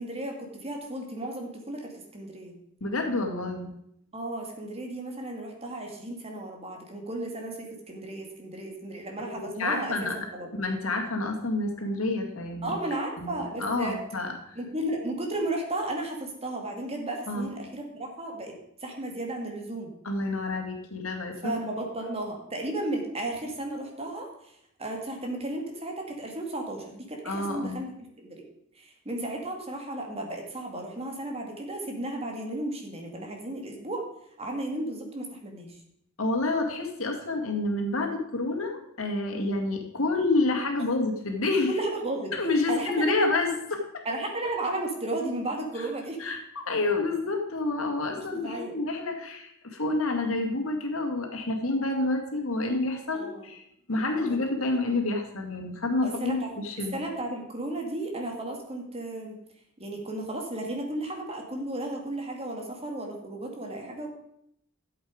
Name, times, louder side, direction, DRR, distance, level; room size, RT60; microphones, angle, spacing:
voice 1, 0.0-2.5 4.1-10.5 12.6-14.0 14.6-18.5 18.8-19.9 21.4-24.3 24.8-28.4 28.8-34.0 34.4-35.8 41.7-42.3 42.7-43.3 44.0-46.2 48.3-48.7 53.1-53.5 54.5-54.6 56.0-56.5 56.9-59.3 59.8-64.1, right 1 dB, 30° right, 2 dB, 2.2 m, -34 dB
voice 2, 2.8-3.7 9.2-10.2 10.6-12.7 13.2-14.3 17.3-17.5 20.0-21.5 27.2-27.8 36.2-41.7 42.3-44.0 46.2-53.6 53.9-57.0, left 2 dB, 70° left, 3 dB, 2.1 m, -28 dB
12.5 x 8.0 x 5.1 m, 0.74 s
head